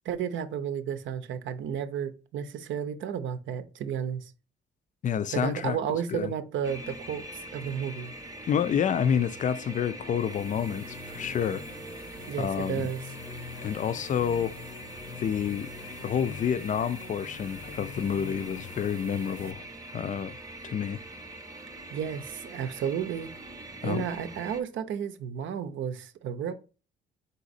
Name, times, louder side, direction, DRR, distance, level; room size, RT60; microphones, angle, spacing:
voice 1, 0.0-4.3 5.3-8.1 12.3-13.0 21.9-23.3 23.8-26.5, right 8 dB, 75° right, 0.6 m, -32 dB
voice 2, 5.0-5.8 6.1-6.3 8.5-11.6 12.4-12.9 13.6-14.6 15.2-15.7 16.0-19.6 19.9-20.4 20.6-21.0 23.8-24.1, left 8 dB, 40° left, 0.4 m, -28 dB
sound 1, 6.6-24.6, right 1 dB, 15° right, 0.8 m, -43 dB
sound 2, 10.1-19.5, left 5 dB, 75° left, 0.8 m, -45 dB
4.0 x 3.9 x 2.6 m
cardioid pair, 90°, 20 cm